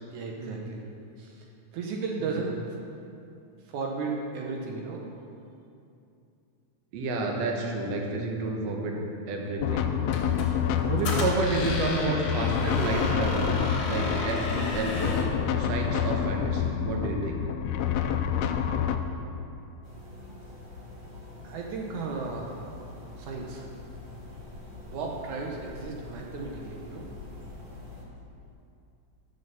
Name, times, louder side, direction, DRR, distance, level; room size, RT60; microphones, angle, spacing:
voice 1, 0.1-0.9 1.2-1.5 1.7-2.6 3.7-5.1 21.4-22.6 23.2-23.7 24.9-27.1, right 4 dB, 80° right, 0 dB, 2.4 m, -34 dB
voice 2, 6.9-9.0 9.3-10.4 10.8-13.6 13.9-17.4, right 2 dB, 65° right, 0 dB, 2.2 m, -30 dB
sound 1, 9.6-19.0, left 8 dB, 80° left, 1.5 m, -28 dB
Squeak, 10.1-15.4, left 3 dB, 55° left, 2.1 m, -33 dB
sound 2, 19.8-28.0, left 2 dB, 20° right, 1.5 m, -45 dB
11.5 x 6.7 x 6.9 m, 2.7 s
omnidirectional pair, 3.5 m